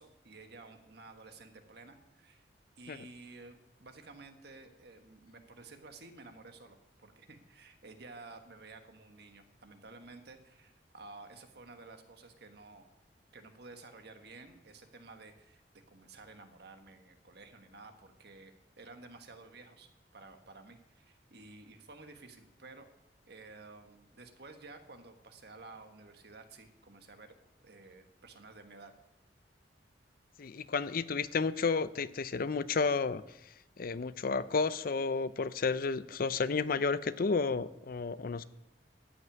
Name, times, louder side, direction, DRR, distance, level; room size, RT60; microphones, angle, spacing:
voice 1, 0.0-2.5 2.8-12.8 13.3-22.9 23.3-27.3 27.6-28.9, right 3 dB, 65° right, 6 dB, 1.5 m, -53 dB
voice 2, 30.4-38.4, left 4 dB, 55° left, 15 dB, 0.5 m, -32 dB
13.5 x 6.1 x 9.1 m, 0.93 s
head